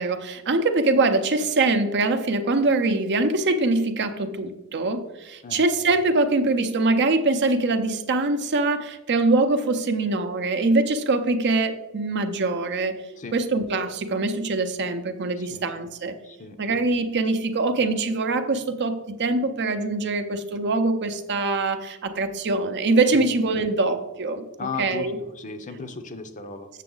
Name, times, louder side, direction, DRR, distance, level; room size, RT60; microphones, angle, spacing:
voice 1, 0.0-12.9 13.3-16.1 16.6-25.2, right 3 dB, 50° right, 8 dB, 0.7 m, -23 dB
voice 2, 16.2-16.6 23.1-23.3 24.6-26.7, left 4 dB, 35° left, 8 dB, 0.6 m, -35 dB
7.4 x 6.9 x 3.8 m, 1.0 s
head